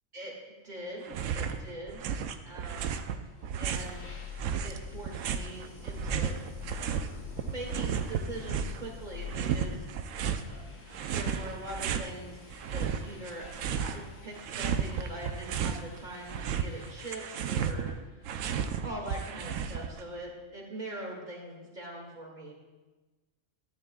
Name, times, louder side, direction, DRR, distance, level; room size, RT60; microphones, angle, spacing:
voice 1, 0.6-2.1 2.4-3.0 3.6-4.1 4.6-6.3 7.4-9.9 10.5-10.6 11.1-12.4 12.7-18.3 18.8-22.5, right 1 dB, 35° right, -2 dB, 2.2 m, -42 dB
sound 1, 1.1-1.6 1.9-4.0 4.4-7.1 7.4-8.8 9.3-10.5 10.9-12.1 12.5-14.0 14.3-15.8 16.1-20.0, right 7 dB, 85° right, 1.0 m, -33 dB
sound 2, 3.2-17.8, left 6 dB, 80° left, 1.9 m, -47 dB
13.5 x 10.5 x 2.3 m, 1.2 s
omnidirectional pair, 1.3 m